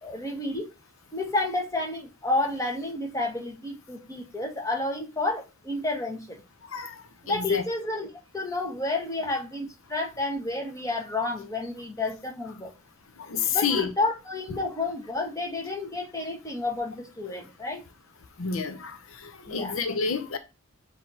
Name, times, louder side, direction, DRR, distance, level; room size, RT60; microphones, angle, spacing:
voice 1, 0.0-0.7 1.1-6.4 7.2-8.1 8.3-12.7 13.5-17.8 19.5-19.8, left 2 dB, 15° left, 1.6 m, -30 dB
voice 2, 7.3-7.6 13.3-13.9 18.4-19.0 19.5-20.4, left 5 dB, 75° left, 0.8 m, -28 dB
7.6 x 3.0 x 4.2 m
head